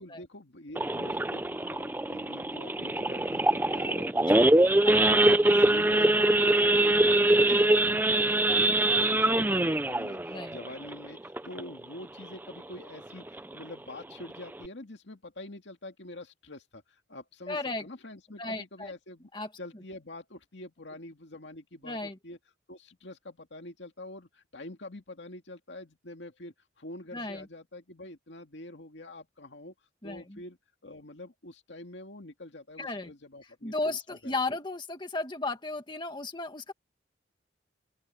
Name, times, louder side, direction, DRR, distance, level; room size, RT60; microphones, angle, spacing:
voice 1, 0.0-19.3 19.6-22.4 22.7-29.7 30.0-30.6 30.8-34.3, left 1 dB, 70° left, 2.3 m, -46 dB
Idling / Accelerating revving vroom / Sawing, 0.8-11.8 12.2-12.4 12.7-12.8 13.3-13.5 14.0-14.1 14.3-14.7, right 1 dB, 10° right, 0.5 m, -24 dB
voice 2, 17.5-17.8 18.4-18.9 19.3-19.5 21.8-22.2 27.1-27.5 30.0-30.4 32.8-33.1 33.6-36.7, left 2 dB, 25° left, 2.0 m, -34 dB
open air
head